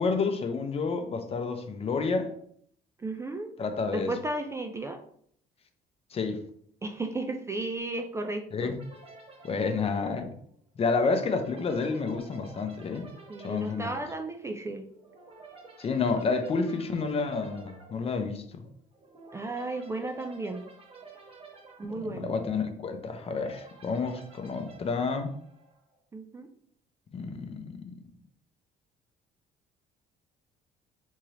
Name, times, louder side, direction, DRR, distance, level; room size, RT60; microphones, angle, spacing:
voice 1, 0.0-2.3 3.6-4.1 6.1-6.4 8.5-8.8 9.4-10.3 10.8-13.1 13.4-13.9 15.8-18.6 22.0-25.3 27.1-27.9, left 4 dB, 35° left, 7 dB, 0.6 m, -29 dB
voice 2, 3.0-3.5 3.9-5.0 6.8-8.7 13.3-14.9 19.3-20.6 21.8-22.3 26.1-26.5, right 2 dB, 15° right, 5 dB, 0.3 m, -34 dB
sound 1, 8.8-26.0, right 3 dB, 35° right, 1.0 m, -51 dB
3.6 x 2.9 x 3.2 m, 0.64 s
cardioid pair, 110°, 17 cm